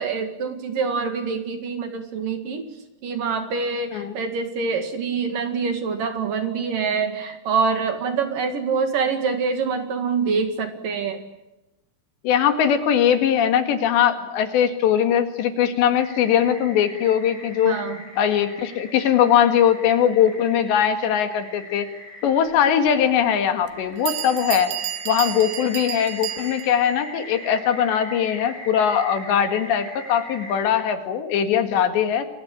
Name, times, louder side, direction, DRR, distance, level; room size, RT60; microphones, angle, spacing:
voice 1, 0.0-2.7 3.0-11.2 17.6-18.0, right 5 dB, 55° right, 7 dB, 3.2 m, -25 dB
voice 2, 12.2-17.8 18.2-21.9 22.2-24.7 25.1-32.3, left 9 dB, 70° left, 8 dB, 4.1 m, -20 dB
sound 1, 15.9-30.6, left 1 dB, 10° right, 6.7 m, -41 dB
Bell, 22.9-23.0 23.7-23.8 24.1-26.9, right 12 dB, 70° right, 3.2 m, -31 dB
28.5 x 22.5 x 8.7 m, 0.97 s
omnidirectional pair, 5.3 m